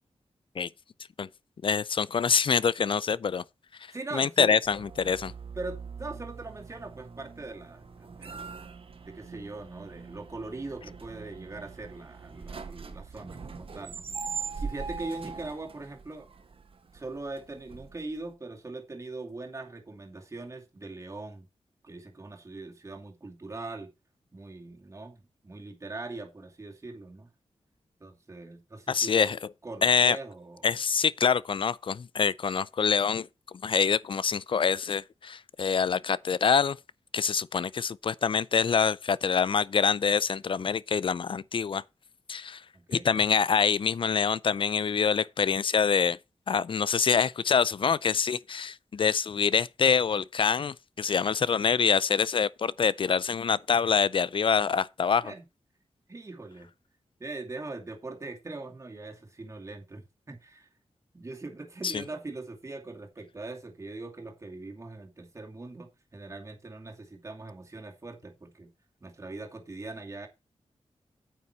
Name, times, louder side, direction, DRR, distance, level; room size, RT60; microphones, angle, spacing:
voice 1, 1.6-3.4 4.1-5.3 28.9-29.4 29.8-30.2 30.6-33.3 33.6-36.8 37.1-41.8 42.3-42.6 42.9-46.2 46.5-55.3 61.8-62.0, left 6 dB, 50° left, 0.5 m, -25 dB
voice 2, 3.9-4.5 5.6-8.6 9.0-14.3 14.5-16.3 16.9-21.5 21.8-23.9 24.3-27.3 28.0-29.3 29.6-30.7 42.7-43.1 55.2-55.5 56.1-56.7 57.2-60.7 61.1-68.7 69.0-70.3, right 2 dB, 25° right, 2.4 m, -41 dB
sound 1, 4.6-18.3, right 5 dB, 55° right, 1.8 m, -42 dB
9.2 x 8.5 x 4.5 m
wide cardioid pair, 165°, 11 cm